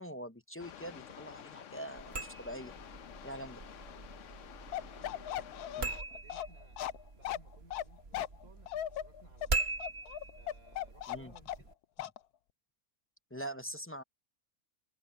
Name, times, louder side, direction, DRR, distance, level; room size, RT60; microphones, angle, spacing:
voice 1, 0.0-2.7 3.2-3.6 5.8-5.9 11.1-11.3 13.3-14.0, right 1 dB, 15° left, 0.5 m, -43 dB
sound 1, 0.6-6.0, left 9 dB, 60° left, 1.0 m, -51 dB
sound 2, 2.0-11.7, right 3 dB, 45° right, 1.9 m, -42 dB
voice 2, 3.5-4.1 4.6-9.8 10.3-11.8, right 1 dB, 65° right, 4.8 m, -63 dB
Bark, 4.7-11.7 12.0-12.2, left 11 dB, 90° left, 1.2 m, -38 dB
omnidirectional pair, 1.6 m